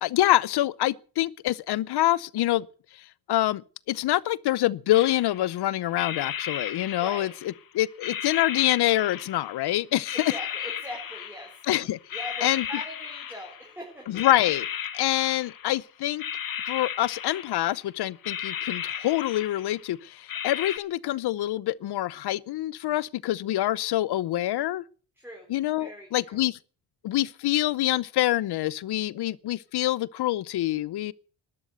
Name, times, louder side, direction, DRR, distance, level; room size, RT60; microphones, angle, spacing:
voice 1, 0.0-2.7 2.9-3.6 3.9-7.3 7.7-10.3 11.7-12.0 12.4-12.6 14.1-14.7 14.9-16.2 16.7-24.8 25.5-26.6 27.0-31.1, left 14 dB, 75° left, 0.8 m, -26 dB
sound 1, 4.9-5.6 6.0-7.6 8.0-9.7 10.0-11.7 12.1-13.8 14.1-15.8 16.2-17.9 18.2-19.9 20.3-20.8, left 8 dB, 55° left, 1.6 m, -35 dB
voice 2, 7.0-7.3 10.1-11.6 12.1-14.3 25.2-25.5 25.8-26.4, equal, 5° right, 4.2 m, -41 dB
12.5 x 12.0 x 8.0 m
cardioid pair, 130°, 40 cm